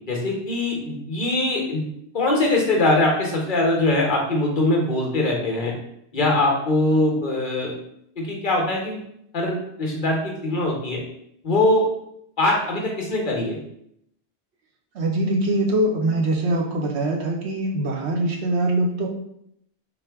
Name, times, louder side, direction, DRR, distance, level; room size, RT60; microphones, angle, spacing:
voice 1, 0.1-1.9 2.1-5.7 6.1-7.7 8.2-9.0 9.3-11.0 11.4-11.9 12.4-13.6, left 2 dB, 50° left, -1 dB, 1.0 m, -22 dB
voice 2, 14.9-19.1, right 1 dB, 85° right, 1 dB, 1.0 m, -23 dB
3.7 x 2.6 x 3.4 m, 0.75 s
omnidirectional pair, 1.1 m